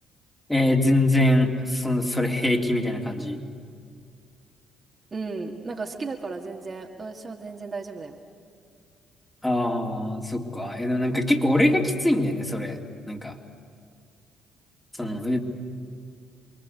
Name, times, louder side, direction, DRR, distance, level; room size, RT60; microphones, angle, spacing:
voice 1, 0.5-3.5 9.4-12.8 13.1-13.4 15.0-15.4, left 1 dB, 10° left, 1 dB, 3.5 m, -23 dB
voice 2, 5.1-8.2, right 4 dB, 35° right, 1 dB, 2.3 m, -34 dB
28.5 x 22.5 x 8.5 m, 2.2 s
figure-of-eight pair, 45°, 0 cm